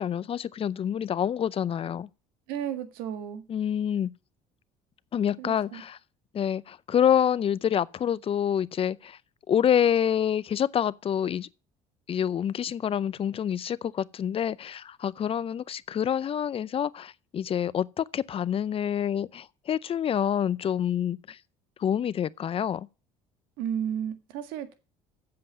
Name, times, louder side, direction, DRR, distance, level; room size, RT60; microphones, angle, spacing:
voice 1, 0.0-2.1 3.5-4.1 5.1-6.0 6.3-9.2 9.5-11.5 12.1-21.4 21.8-22.9, left 9 dB, 40° left, 0.6 m, -27 dB
voice 2, 2.5-3.4 5.4-5.8 23.6-24.7, right 9 dB, 80° right, 1.7 m, -33 dB
7.7 x 7.6 x 8.3 m
supercardioid pair, 75°, 15 cm